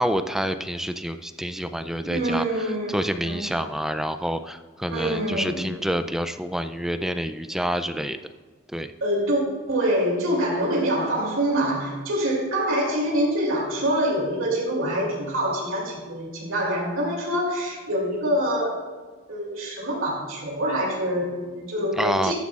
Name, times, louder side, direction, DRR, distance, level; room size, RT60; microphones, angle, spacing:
voice 1, 0.0-8.2 8.7-8.9 22.0-22.3, equal, ahead, 9 dB, 0.4 m, -28 dB
voice 2, 2.0-2.9 3.2-3.4 4.9-5.7 9.0-9.4 9.7-18.8 19.3-22.3, right 1 dB, 85° right, -3 dB, 2.8 m, -25 dB
14.0 x 10.0 x 2.5 m, 1.4 s
head